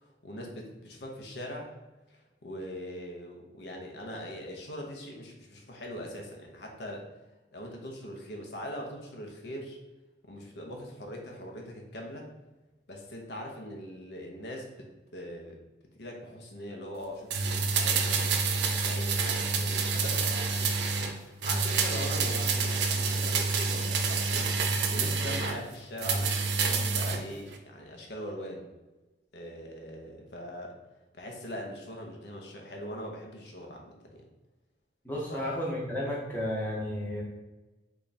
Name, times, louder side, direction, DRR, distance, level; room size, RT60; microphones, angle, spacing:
voice 1, 0.0-1.7 2.1-7.1 7.5-9.8 10.2-12.3 12.9-15.6 16.0-20.8 21.2-24.6 24.9-28.6 29.3-30.8 31.1-34.2 35.3-35.4, equal, 70° left, 1 dB, 0.6 m, -41 dB
sound 1, 17.3-21.1 21.4-25.6 26.0-27.2 27.5-27.6, right 4 dB, 75° right, 0.4 m, -28 dB
voice 2, 35.0-37.2, left 1 dB, 10° left, -4 dB, 0.7 m, -32 dB
3.2 x 2.3 x 3.9 m, 1.1 s
head